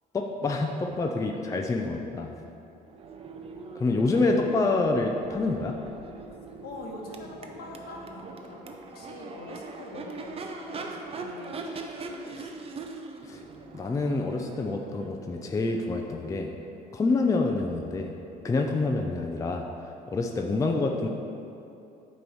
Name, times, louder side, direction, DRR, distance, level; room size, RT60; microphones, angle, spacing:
voice 1, 0.1-2.3 3.8-5.8 13.2-13.4 13.7-16.5 16.9-18.1 18.4-19.7 20.1-21.1, left 3 dB, 20° left, 2 dB, 0.4 m, -27 dB
Crowd / Race car auto racing / Accelerating revving vroom, 2.8-16.7, right 3 dB, 35° right, 0.5 m, -42 dB
voice 2, 6.6-12.5, left 2 dB, 65° left, 0 dB, 1.1 m, -44 dB
8.3 x 3.0 x 5.5 m, 2.8 s
cardioid pair, 110°, 17 cm